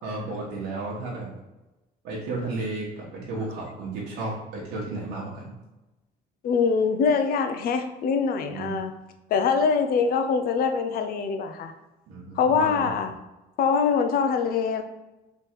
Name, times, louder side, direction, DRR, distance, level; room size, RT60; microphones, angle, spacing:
voice 1, 0.0-1.3 2.0-5.5 8.5-8.8 12.1-12.9, right 2 dB, 80° right, -4 dB, 1.2 m, -33 dB
voice 2, 6.4-8.9 9.3-11.7 12.4-13.1 13.6-14.8, left 5 dB, 60° left, 7 dB, 0.6 m, -23 dB
3.4 x 3.1 x 4.5 m, 1.0 s
cardioid pair, 110°, 17 cm